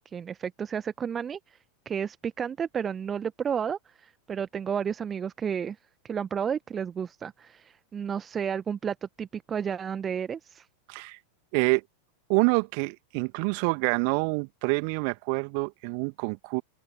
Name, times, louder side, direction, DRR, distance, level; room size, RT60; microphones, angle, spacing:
voice 1, 0.0-1.6 1.8-5.8 6.0-10.7, right 7 dB, 20° right, 1.2 m, -32 dB
voice 2, 10.9-11.2 11.5-11.8 12.3-16.6, right 40 dB or more, 45° right, 2.2 m, -27 dB
open air
figure-of-eight pair, 90°, 0 cm